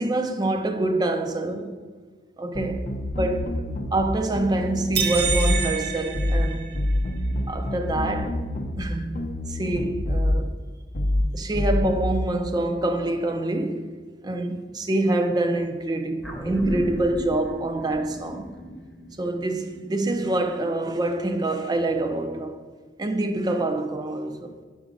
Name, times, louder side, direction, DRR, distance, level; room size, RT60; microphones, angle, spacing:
voice 1, 0.0-1.8 2.4-2.9 3.2-6.7 7.5-8.4 8.8-10.5 11.3-13.9 14.2-18.6 19.2-22.6 23.0-24.6, right 2 dB, 25° right, 0.4 m, -26 dB
sound 1, 2.5-4.1 4.3-5.6 6.1-6.5 6.7-8.9 9.1-10.4 10.9-11.3 11.5-12.1, left 1 dB, 45° left, 0.5 m, -26 dB
sound 2, 4.9-7.1, right 6 dB, 60° right, 0.7 m, -28 dB
sound 3, 16.2-20.8 21.2-21.3, equal, ahead, 0.8 m, -36 dB
4.9 x 4.8 x 5.2 m
head